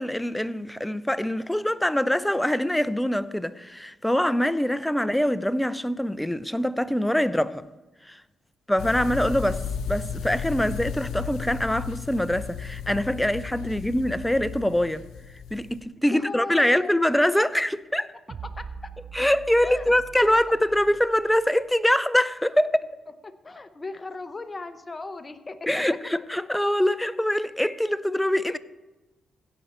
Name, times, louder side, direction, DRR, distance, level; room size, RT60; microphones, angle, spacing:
voice 1, 0.0-7.6 8.1-8.2 8.7-15.0 15.5-18.1 19.1-22.7 25.7-28.6, left 1 dB, 5° left, 0.5 m, -24 dB
sound 1, 8.8-15.8, left 6 dB, 80° left, 0.7 m, -34 dB
voice 2, 16.1-17.0 18.4-18.7 19.6-20.6 23.2-25.8 26.6-26.7, left 3 dB, 30° left, 0.9 m, -38 dB
sound 2, 18.3-21.7, right 6 dB, 55° right, 0.4 m, -42 dB
16.0 x 5.5 x 4.5 m
supercardioid pair, 60°, 0 cm